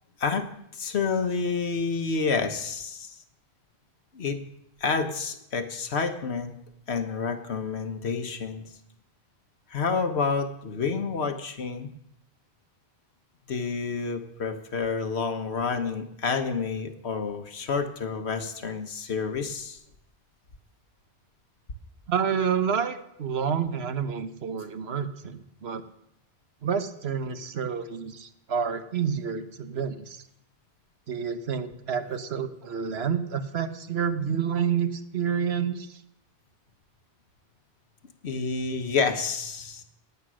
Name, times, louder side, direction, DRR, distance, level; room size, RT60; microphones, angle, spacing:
voice 1, 0.7-3.2 4.1-4.4 4.8-6.5 6.9-8.7 9.7-11.9 13.5-19.8 38.2-39.8, left 5 dB, 80° left, 8 dB, 1.5 m, -29 dB
voice 2, 22.1-25.8 26.6-30.2 31.1-36.0, right 7 dB, 75° right, 10 dB, 1.2 m, -29 dB
18.5 x 8.2 x 6.3 m, 0.79 s
omnidirectional pair, 1.1 m